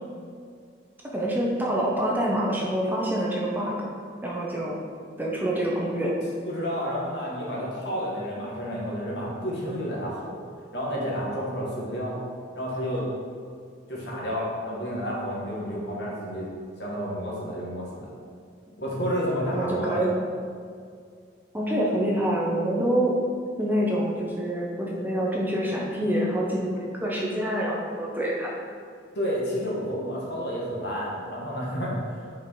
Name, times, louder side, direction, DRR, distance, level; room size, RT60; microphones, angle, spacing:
voice 1, 1.1-3.8 4.2-4.8 5.2-6.1 19.5-20.1 21.5-23.1 23.6-28.6, right 1 dB, 10° right, -4 dB, 0.8 m, -26 dB
voice 2, 6.4-10.4 10.7-12.1 12.5-13.1 13.9-16.5 16.8-18.1 18.8-20.0 29.1-32.3, equal, 70° left, -5 dB, 1.7 m, -30 dB
5.5 x 4.9 x 4.6 m, 2.2 s
head